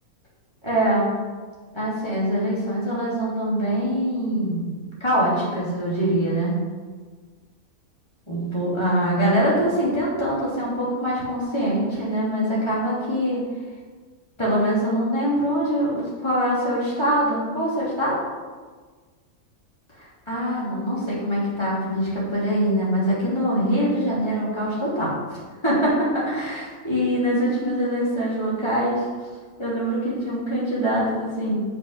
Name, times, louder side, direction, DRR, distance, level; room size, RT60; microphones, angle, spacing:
voice 1, 0.6-1.1 1.7-4.7 5.0-6.5 8.3-13.4 14.4-18.2 20.3-25.1 25.6-29.0 29.6-31.6, equal, 20° left, -8 dB, 3.1 m, -23 dB
6.9 x 6.0 x 6.5 m, 1.5 s
omnidirectional pair, 1.5 m